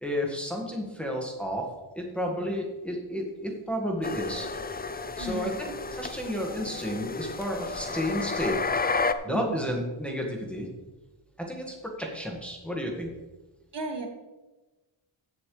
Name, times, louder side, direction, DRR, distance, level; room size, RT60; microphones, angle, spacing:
voice 1, 0.0-1.7 2.0-4.5 5.2-8.6 9.2-10.7 11.4-13.1, equal, ahead, -1 dB, 1.8 m, -32 dB
sound 1, 4.0-9.1, left 4 dB, 20° left, 0.4 m, -32 dB
voice 2, 5.2-5.5 9.3-9.6 13.7-14.1, right 2 dB, 60° right, 3 dB, 1.7 m, -35 dB
16.5 x 7.4 x 3.3 m, 1.1 s
wide cardioid pair, 145°, 49 cm